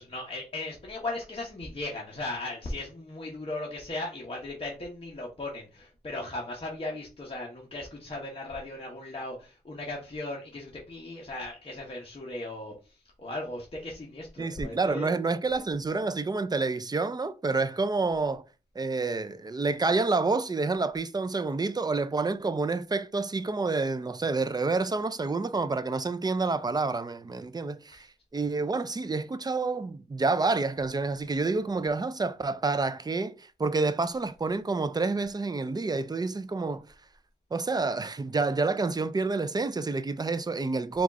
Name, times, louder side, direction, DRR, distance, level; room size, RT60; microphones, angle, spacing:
voice 1, 0.0-15.1 27.9-28.1, left 2 dB, 35° left, 0.9 m, -37 dB
voice 2, 14.4-18.4 18.8-28.1 28.3-36.8 37.5-41.0, right 3 dB, 25° right, 0.3 m, -28 dB
4.8 x 2.4 x 4.0 m
wide cardioid pair, 135°, 17 cm